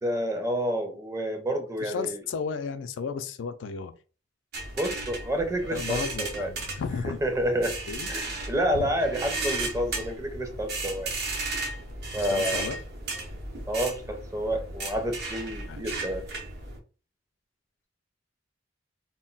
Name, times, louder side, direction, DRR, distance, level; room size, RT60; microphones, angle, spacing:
voice 1, 0.0-2.1 4.8-6.5 7.2-7.8 8.1-11.1 12.1-12.6 13.7-16.2, equal, 15° right, 0.5 m, -29 dB
voice 2, 1.8-3.9 5.6-7.2 7.9-8.1 8.7-8.9 12.2-12.8 15.7-15.8, left 5 dB, 75° left, 0.3 m, -33 dB
sound 1, 4.5-16.8, right 3 dB, 60° right, 0.7 m, -35 dB
2.2 x 2.1 x 3.8 m
head